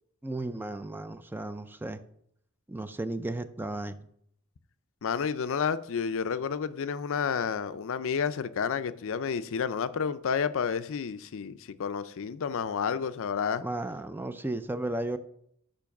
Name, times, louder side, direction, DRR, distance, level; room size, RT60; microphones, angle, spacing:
voice 1, 0.2-2.0 2.7-4.1 13.6-15.2, right 2 dB, 10° right, 0.3 m, -34 dB
voice 2, 5.0-13.6, left 6 dB, 65° left, 0.4 m, -30 dB
6.9 x 5.2 x 5.9 m
head